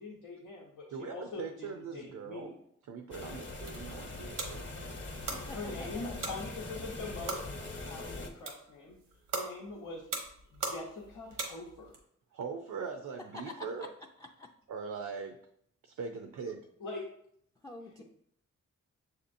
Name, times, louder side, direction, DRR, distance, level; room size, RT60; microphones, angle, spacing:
voice 1, 0.0-2.5 5.5-7.4 7.8-9.0 9.3-10.0 10.5-11.9 16.8-17.1, left 3 dB, 90° left, -5 dB, 0.8 m, -43 dB
voice 2, 0.9-2.5 2.9-4.9 12.3-13.9 14.7-15.4 15.8-16.7, right 5 dB, 75° right, 5 dB, 0.5 m, -41 dB
sound 1, 3.1-8.3, left 2 dB, 35° left, 0.8 m, -42 dB
sound 2, 3.6-12.0, right 4 dB, 90° right, 0.9 m, -42 dB
voice 3, 5.3-6.2 13.2-14.5 17.6-18.0, left 2 dB, 10° left, 2 dB, 0.4 m, -47 dB
6.5 x 2.8 x 2.6 m, 0.69 s
cardioid pair, 60°, 31 cm